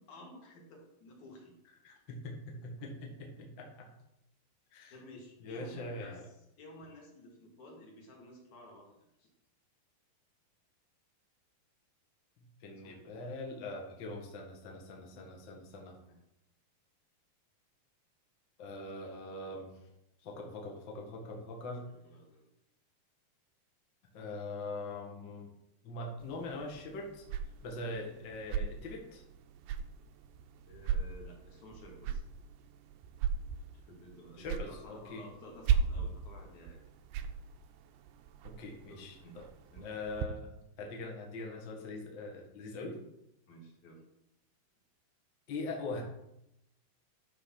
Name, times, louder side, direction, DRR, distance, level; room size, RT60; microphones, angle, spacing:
voice 1, 0.0-1.5 4.9-9.3 12.8-13.1 16.1-16.2 22.0-22.4 30.7-32.2 33.9-36.8 38.9-39.4 39.7-39.9 43.5-44.0, equal, 50° left, -2 dB, 3.0 m, -53 dB
voice 2, 1.8-3.9 4.7-5.0 5.4-6.3 12.6-15.9 18.6-19.7 20.2-21.8 24.1-25.5 25.8-27.2 27.6-29.2 34.4-35.3 38.4-39.4 39.8-43.0 45.5-46.0, left 2 dB, 75° left, 0 dB, 1.0 m, -42 dB
sound 1, 26.2-40.3, right 7 dB, 85° right, 2.4 m, -38 dB
12.0 x 4.0 x 5.9 m, 0.82 s
omnidirectional pair, 4.8 m